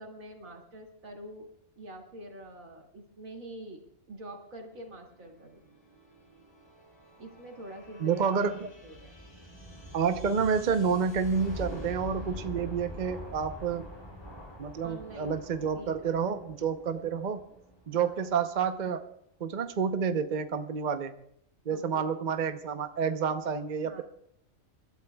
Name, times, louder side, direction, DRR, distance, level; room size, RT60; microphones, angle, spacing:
voice 1, 0.0-1.5 1.8-3.8 4.1-5.7 7.2-8.4 8.8-9.2 14.8-15.4 15.7-16.3 17.9-18.2 21.7-22.1 23.8-24.0, right 1 dB, 90° right, 1 dB, 2.7 m, -45 dB
sound 1, 5.1-18.6, equal, 20° left, 6.1 m, -45 dB
voice 2, 8.0-8.7 9.9-13.8 14.6-17.4 17.9-19.1 19.4-21.1 21.7-24.0, right 6 dB, 40° right, 8 dB, 0.8 m, -29 dB
28.5 x 12.5 x 2.3 m, 0.75 s
omnidirectional pair, 1.4 m